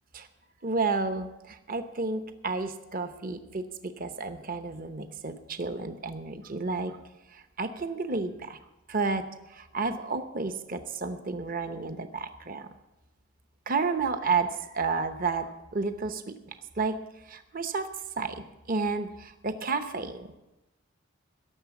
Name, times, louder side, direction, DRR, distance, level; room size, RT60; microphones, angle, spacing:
voice 1, 0.6-7.0 7.3-8.6 8.9-9.2 9.5-12.7 13.7-16.3 16.8-17.0 17.3-17.9 18.2-20.4, right 4 dB, 40° right, 9 dB, 0.9 m, -31 dB
16.5 x 7.2 x 7.1 m, 0.97 s
head